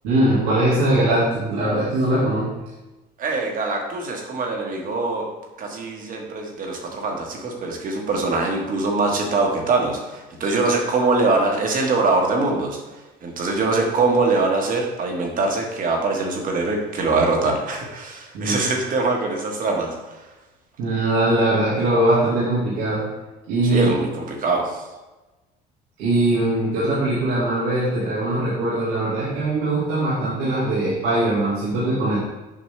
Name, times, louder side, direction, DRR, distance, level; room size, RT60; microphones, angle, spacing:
voice 1, 0.0-2.5 18.3-18.6 20.8-23.0 23.5-23.9 26.0-32.3, right 1 dB, 80° right, -9 dB, 2.1 m, -21 dB
voice 2, 3.2-5.3 5.6-12.8 13.2-20.0 23.6-24.8, right 3 dB, 45° right, 1 dB, 1.6 m, -23 dB
7.7 x 5.3 x 3.3 m, 1.1 s
supercardioid pair, 100°, 19 cm